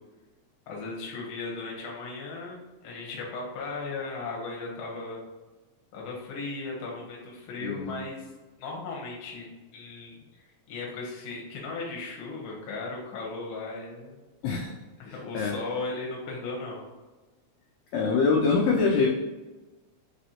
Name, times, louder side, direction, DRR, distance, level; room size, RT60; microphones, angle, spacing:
voice 1, 0.7-5.2 5.9-8.2 8.6-10.2 10.7-14.2 15.0-16.8, left 3 dB, 60° left, -2 dB, 1.4 m, -36 dB
voice 2, 7.6-7.9 14.4-14.7 15.3-15.5 17.9-19.1, left 4 dB, 80° left, 0 dB, 1.5 m, -24 dB
5.2 x 3.1 x 2.8 m, 1.2 s
omnidirectional pair, 3.4 m